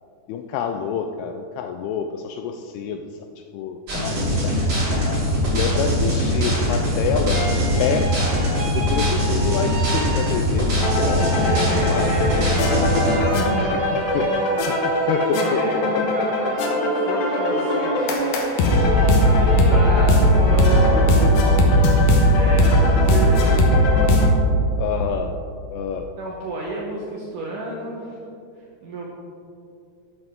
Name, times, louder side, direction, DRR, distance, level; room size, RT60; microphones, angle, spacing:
voice 1, 0.3-3.0 3.5-4.5 4.9-5.2 5.5-8.1 8.7-11.4 11.9-12.1 12.8-13.1 13.6-14.3 14.7-16.2 24.8-25.4 25.7-26.1, left 7 dB, 85° left, 5 dB, 2.3 m, -28 dB
sound 1, 3.9-13.2, equal, 30° right, 2.7 m, -21 dB
sound 2, 7.3-10.7 11.0-21.7, right 1 dB, 50° right, 3.1 m, -30 dB
sound 3, 10.8-24.3, left 1 dB, 70° left, 2.5 m, -18 dB
voice 2, 11.4-13.5 15.3-18.4 19.2-21.2 22.3-23.8 26.2-28.2 28.8-29.0, right 2 dB, 75° right, -3 dB, 1.9 m, -32 dB
13.0 x 8.2 x 3.6 m, 2.5 s
omnidirectional pair, 5.0 m